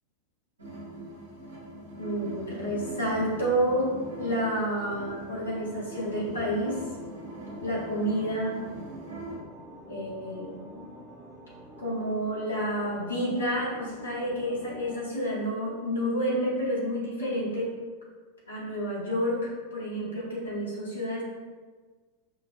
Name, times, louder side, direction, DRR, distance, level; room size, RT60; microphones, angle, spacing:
sound 1, 0.6-9.4, right 1 dB, 75° right, 1.0 m, -41 dB
voice 1, 2.0-3.9 4.2-6.9 7.6-8.6 9.9-10.9 11.8-17.7 18.5-21.2, equal, 70° left, -5 dB, 1.1 m, -29 dB
sound 2, 2.8-15.1, equal, 15° right, 1.0 m, -48 dB
5.3 x 2.5 x 2.2 m, 1.4 s
figure-of-eight pair, 90°, 0 cm